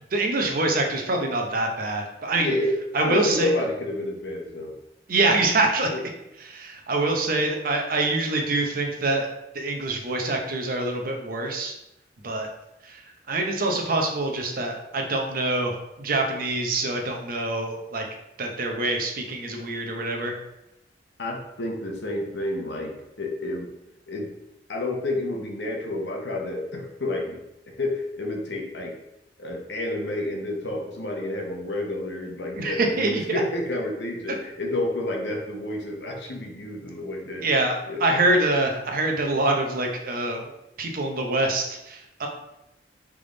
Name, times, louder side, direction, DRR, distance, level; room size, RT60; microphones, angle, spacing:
voice 1, 0.1-2.5 2.9-3.5 5.1-5.9 6.4-9.3 9.5-11.7 12.2-12.5 12.8-13.0 13.3-18.0 18.4-20.4 32.6-33.4 34.3-34.4 37.4-40.4 40.8-42.3, right 2 dB, 55° right, 2 dB, 0.7 m, -25 dB
voice 2, 2.4-4.8 5.9-6.0 21.2-23.7 24.1-24.3 24.7-27.4 27.8-29.0 29.4-37.5 37.9-38.0, left 1 dB, 75° left, 1 dB, 0.9 m, -30 dB
3.6 x 3.4 x 3.8 m, 0.87 s
head